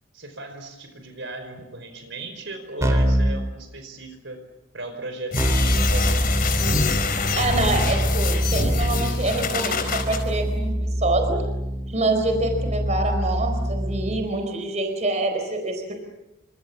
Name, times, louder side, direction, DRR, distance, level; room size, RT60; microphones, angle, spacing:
voice 1, 0.1-4.4 4.7-6.3, right 2 dB, 60° right, 8 dB, 5.0 m, -37 dB
Keyboard (musical), 2.8-3.4 5.4-14.2, equal, 15° right, 3.9 m, -25 dB
sound 1, 5.3-10.2, left 3 dB, 45° left, 4.4 m, -25 dB
voice 2, 7.4-11.4 11.9-15.9, right 2 dB, 35° right, 5 dB, 4.3 m, -26 dB
29.5 x 26.5 x 7.4 m, 0.96 s
head